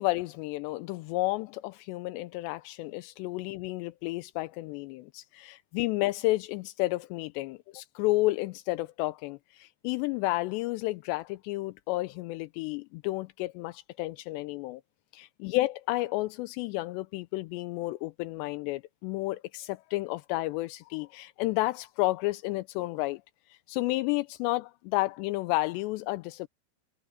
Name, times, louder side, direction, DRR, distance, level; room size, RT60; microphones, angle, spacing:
voice 1, 0.0-14.8 15.1-23.2 23.5-26.5, left 19 dB, 85° left, 2.8 m, -31 dB
omnidirectional pair, 4.9 m